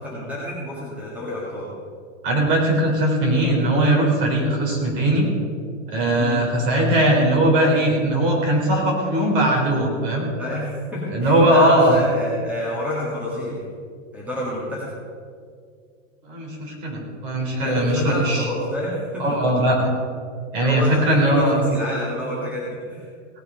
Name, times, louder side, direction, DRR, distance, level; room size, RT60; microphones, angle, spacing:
voice 1, 0.0-1.7 6.1-6.4 10.4-13.6 14.1-14.9 17.6-19.4 20.6-23.1, left 1 dB, 5° right, -6 dB, 2.0 m, -28 dB
voice 2, 2.2-5.3 5.9-10.2 11.1-12.0 16.2-18.5 19.2-19.9 20.5-21.6, right 1 dB, 45° right, 0 dB, 4.0 m, -19 dB
17.5 x 8.2 x 5.6 m, 2.2 s
hypercardioid pair, 160°, 38 cm